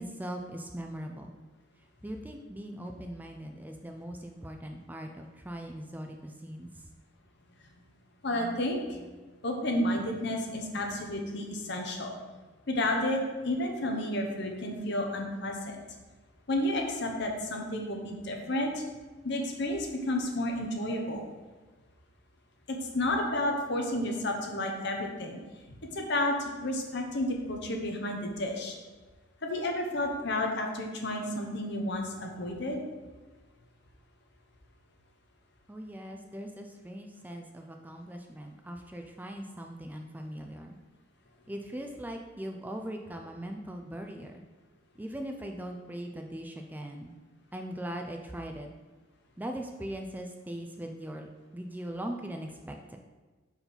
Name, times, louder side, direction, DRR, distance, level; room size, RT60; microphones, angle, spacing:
voice 1, 0.0-1.3 2.0-6.7 35.7-40.8 41.5-44.4 45.0-47.1 47.5-48.7 49.4-53.0, right 1 dB, 10° right, 3 dB, 0.4 m, -40 dB
voice 2, 8.2-9.0 9.4-12.1 12.7-15.8 16.5-18.8 19.2-21.2 22.7-25.4 25.8-28.8 29.4-32.8, left 1 dB, 55° left, 2 dB, 1.0 m, -31 dB
5.2 x 4.7 x 5.6 m, 1.3 s
head